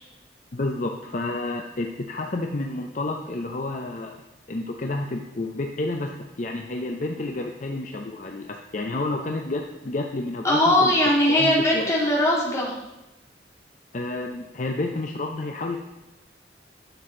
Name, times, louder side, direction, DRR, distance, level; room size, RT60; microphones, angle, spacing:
voice 1, 0.5-4.2 4.5-10.9 11.3-12.0 13.9-15.8, left 2 dB, 45° left, 2 dB, 0.6 m, -30 dB
voice 2, 10.4-12.7, left 1 dB, 15° left, -3 dB, 2.0 m, -20 dB
11.0 x 6.3 x 3.8 m, 1.0 s
head